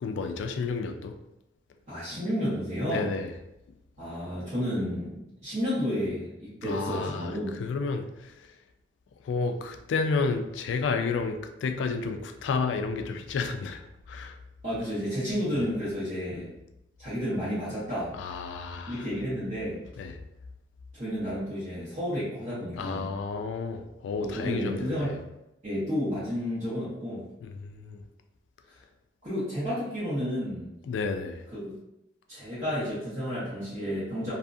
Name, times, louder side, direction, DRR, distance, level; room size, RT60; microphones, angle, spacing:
voice 1, 0.0-1.2 2.8-3.3 6.6-8.4 9.2-14.3 16.3-16.4 18.2-19.0 20.0-20.2 22.8-25.2 27.4-28.0 30.9-31.4, left 4 dB, 85° left, 7 dB, 0.3 m, -31 dB
voice 2, 1.9-3.1 4.0-7.6 14.6-16.5 17.0-18.1 18.9-19.8 20.9-23.1 24.2-25.2 25.6-27.2 29.2-30.7 31.5-31.7 32.3-34.3, equal, 40° right, -13 dB, 1.1 m, -31 dB
2.7 x 2.3 x 2.5 m, 0.89 s
head